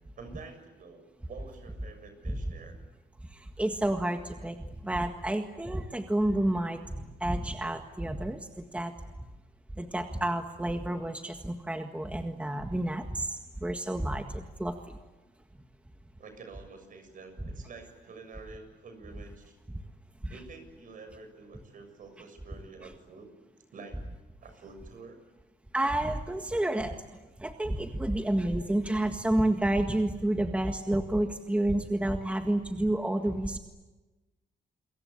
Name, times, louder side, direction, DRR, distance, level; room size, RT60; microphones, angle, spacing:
voice 1, 0.2-2.8 16.2-19.6 20.3-23.3 23.7-24.0 24.4-25.2, right 4 dB, 55° right, 7 dB, 7.2 m, -48 dB
voice 2, 3.3-8.9 9.8-14.8 25.7-27.0 27.4-33.6, right 1 dB, 10° right, 5 dB, 1.8 m, -30 dB
28.5 x 23.5 x 8.6 m, 1.1 s
cardioid pair, 115°, 16 cm